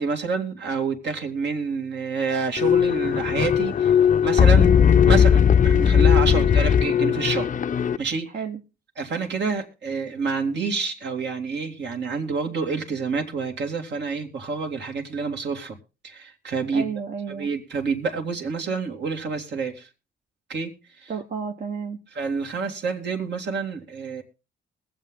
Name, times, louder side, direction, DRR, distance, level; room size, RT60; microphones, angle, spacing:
voice 1, 0.0-4.8 5.1-7.5 8.0-8.4 9.0-15.8 16.0-16.9 17.3-19.9 20.5-21.2 22.1-24.2, right 4 dB, 60° right, 2.4 m, -28 dB
sound 1, 2.6-8.0, left 8 dB, 40° left, 0.6 m, -18 dB
voice 2, 4.9-5.3 6.2-6.5 8.3-8.6 16.7-17.5 21.1-22.0, right 6 dB, 45° right, 1.3 m, -32 dB
21.0 x 7.7 x 3.7 m
cardioid pair, 90°, 20 cm